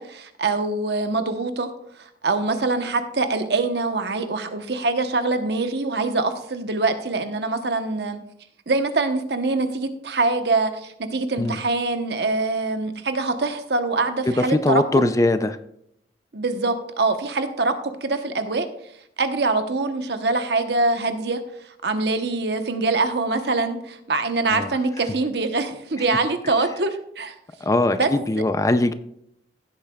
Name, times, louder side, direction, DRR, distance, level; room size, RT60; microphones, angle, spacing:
voice 1, 0.0-1.7 2.0-8.2 8.7-15.0 16.3-18.7 19.2-21.4 21.8-27.3 28.0-28.1, right 3 dB, 65° right, 8 dB, 1.0 m, -24 dB
voice 2, 14.4-15.6 24.5-24.7 27.6-28.9, left 2 dB, 20° left, 11 dB, 0.4 m, -21 dB
16.0 x 8.4 x 2.3 m, 0.74 s
head